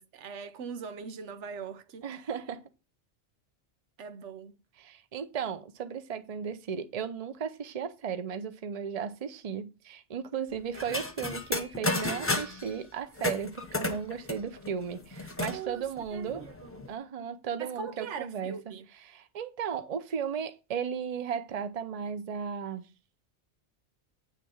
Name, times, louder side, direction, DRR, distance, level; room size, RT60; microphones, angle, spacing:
voice 1, 0.0-2.0 4.0-4.6 15.5-16.8 17.6-18.9, right 6 dB, 85° right, 1.1 m, -41 dB
voice 2, 2.0-2.6 4.8-16.4 16.9-22.9, right 7 dB, 40° right, 0.7 m, -35 dB
sound 1, 10.7-12.7 13.2-15.6 16.0-16.1 16.3-16.9, left 2 dB, 15° left, 0.9 m, -32 dB
9.4 x 3.6 x 7.0 m
omnidirectional pair, 1.2 m